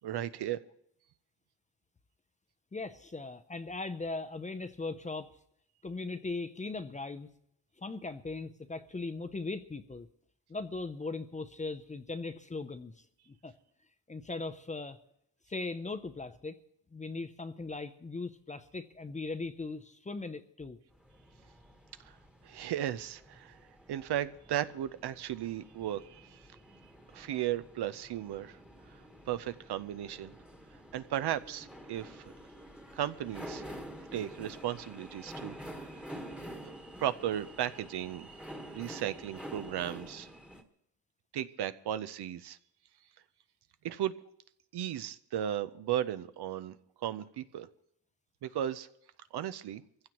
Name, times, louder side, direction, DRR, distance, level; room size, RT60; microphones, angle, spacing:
voice 1, 0.0-0.6 22.0-22.1 22.4-23.6 23.9-26.5 27.1-28.6 28.9-29.0 29.3-30.3 30.9-32.3 32.9-33.6 34.1-36.3 37.0-38.3 38.6-40.3 41.3-42.6 43.8-44.1 44.7-47.7 48.4-48.9 49.3-49.8, right 11 dB, 65° right, 13 dB, 0.7 m, -35 dB
voice 2, 2.7-5.3 5.8-7.3 7.8-10.1 10.5-13.5 14.1-15.0 15.5-16.6 16.9-20.8, left 3 dB, 15° left, 9 dB, 0.6 m, -39 dB
sound 1, 20.9-40.6, equal, ahead, 1.3 m, -48 dB
24.5 x 15.5 x 3.0 m, 0.74 s
cardioid pair, 120°, 43 cm